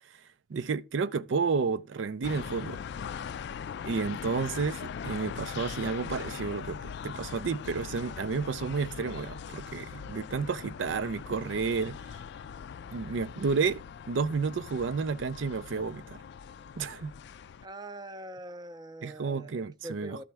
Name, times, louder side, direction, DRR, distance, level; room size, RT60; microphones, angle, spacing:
voice 1, 0.5-2.8 3.8-12.2 12.9-16.2 16.8-17.1 19.0-20.2, right 5 dB, 80° right, 0.5 m, -31 dB
sound 1, 2.2-17.7, left 7 dB, 65° left, 0.3 m, -41 dB
voice 2, 17.6-20.2, right 1 dB, 20° right, 0.5 m, -43 dB
12.5 x 4.3 x 3.4 m
head